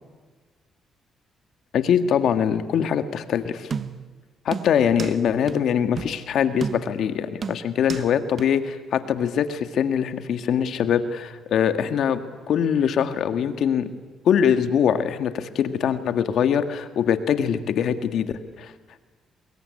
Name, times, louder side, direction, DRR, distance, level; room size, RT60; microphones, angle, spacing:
voice 1, 1.7-3.7 4.5-12.2 12.5-13.9 14.3-18.7, left 8 dB, 70° left, 8 dB, 1.9 m, -23 dB
sound 1, 3.7-4.1 4.5-5.2 5.5-5.6 6.0-6.2 6.6-7.1 7.4-8.1 8.4-8.5, right 6 dB, 45° right, 1.1 m, -32 dB
24.0 x 21.5 x 9.8 m, 1.3 s
cardioid pair, 90°, 0 cm